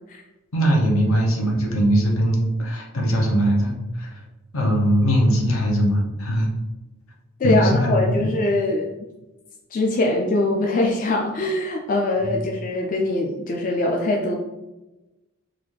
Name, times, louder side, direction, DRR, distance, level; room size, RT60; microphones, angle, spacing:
voice 1, 0.5-4.2 4.5-6.5 7.4-8.3 12.2-12.4, equal, 70° left, 1 dB, 0.8 m, -20 dB
voice 2, 7.4-8.9 9.7-14.3, left 2 dB, 40° left, 1 dB, 0.3 m, -22 dB
3.9 x 2.4 x 3.2 m, 1.0 s
head